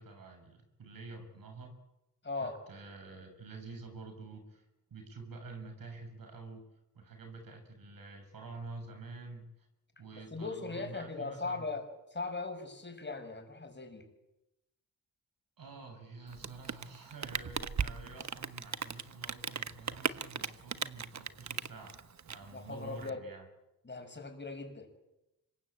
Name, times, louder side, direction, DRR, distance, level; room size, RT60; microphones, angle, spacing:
voice 1, 0.0-1.7 2.4-4.6 4.9-6.6 6.9-9.7 10.0-11.7 15.6-23.5, right 3 dB, 80° right, 5 dB, 7.4 m, -48 dB
voice 2, 2.2-2.6 10.2-14.0 22.5-23.2 23.8-24.9, left 3 dB, 30° left, 5 dB, 6.3 m, -39 dB
Rain, 16.3-23.1, right 7 dB, 55° right, 1.1 m, -38 dB
26.0 x 22.5 x 8.7 m, 0.93 s
cardioid pair, 90°, 34 cm